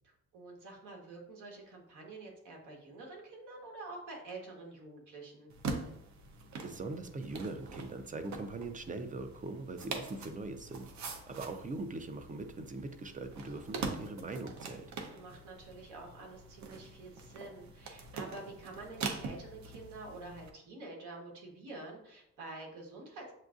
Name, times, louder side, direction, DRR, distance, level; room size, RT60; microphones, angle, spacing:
voice 1, 0.3-5.5 15.0-23.3, right 2 dB, 85° right, 0 dB, 1.3 m, -48 dB
sound 1, 5.5-20.5, right 4 dB, 65° right, 0.8 m, -44 dB
voice 2, 6.6-10.9 11.3-14.8, right 3 dB, 25° right, 8 dB, 0.5 m, -41 dB
7.4 x 2.6 x 2.4 m, 0.75 s
cardioid pair, 90°, 30 cm